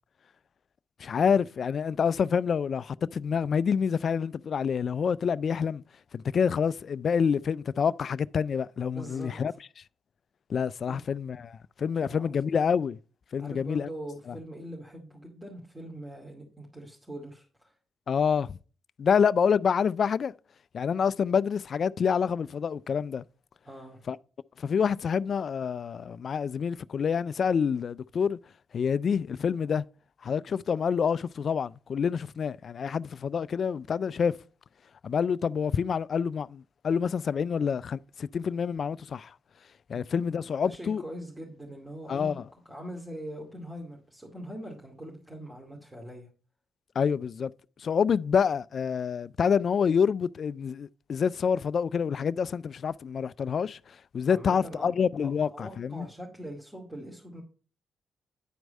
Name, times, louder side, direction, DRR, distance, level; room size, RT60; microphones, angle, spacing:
voice 1, 1.0-5.8 6.1-9.5 10.5-13.0 13.3-13.9 14.3-14.4 18.1-18.6 19.0-20.3 20.7-23.2 24.1-24.2 24.6-28.4 28.7-29.8 30.2-34.4 35.0-39.3 39.9-41.0 42.1-42.4 47.0-47.5 47.8-56.1, left 6 dB, 55° left, 0.3 m, -27 dB
voice 2, 8.9-9.6 10.9-11.0 12.0-12.6 13.4-17.7 23.7-24.0 39.9-42.3 42.7-46.3 54.2-54.9 55.2-57.4, equal, 15° right, 2.4 m, -42 dB
10.0 x 4.7 x 5.3 m
supercardioid pair, 55°, 0 cm